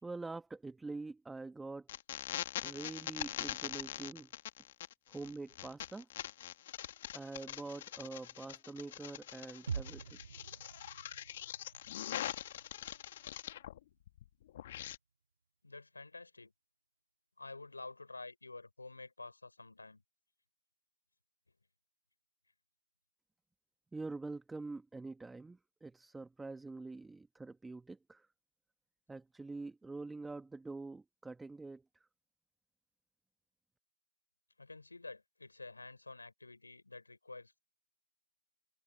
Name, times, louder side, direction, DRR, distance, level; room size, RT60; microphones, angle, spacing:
voice 1, 0.0-1.9 2.6-4.3 5.1-6.1 7.1-10.2 23.9-28.3 29.1-31.8, right 3 dB, 5° right, 1.2 m, -45 dB
sound 1, 1.9-13.8 14.1-15.0, left 12 dB, 35° left, 1.7 m, -43 dB
sound 2, 9.7-13.6 13.9-14.0, right 5 dB, 60° right, 3.3 m, -46 dB
voice 2, 15.6-16.5 17.4-20.0 34.6-37.6, left 3 dB, 85° left, 5.6 m, -49 dB
figure-of-eight pair, 150°, 0 cm